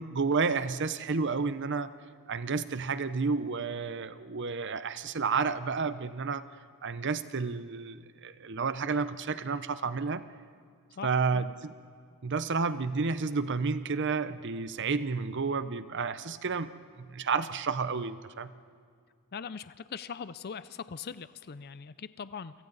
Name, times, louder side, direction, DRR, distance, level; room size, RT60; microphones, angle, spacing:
voice 1, 0.0-1.9 2.3-6.4 6.8-10.2 11.0-11.7 12.2-18.5, right 4 dB, 55° right, 13 dB, 0.8 m, -31 dB
voice 2, 11.0-11.4 19.3-22.6, left 6 dB, 45° left, 15 dB, 0.5 m, -41 dB
28.5 x 24.5 x 4.1 m, 2.2 s
head